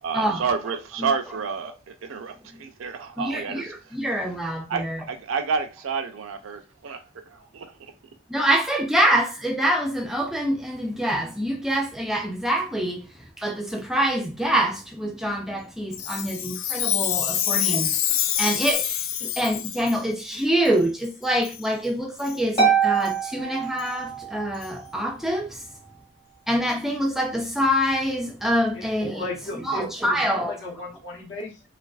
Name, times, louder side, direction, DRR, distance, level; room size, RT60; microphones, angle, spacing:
voice 1, 0.0-3.9 4.7-7.9, right 5 dB, 90° right, 0.4 m, -30 dB
voice 2, 3.2-5.0 8.3-13.0 13.4-17.9 18.4-25.6 26.5-29.2 29.7-30.5, equal, ahead, 0.3 m, -25 dB
Chime, 15.9-20.0 20.7-20.8 21.4-21.6 22.2-22.4 23.0-23.1 23.8-23.9 24.6-24.7, left 10 dB, 90° left, 0.3 m, -26 dB
Harp, 22.6-24.4, right 7 dB, 30° left, 0.9 m, -23 dB
voice 3, 28.7-31.6, left 2 dB, 60° left, 0.8 m, -36 dB
2.4 x 2.3 x 2.3 m
head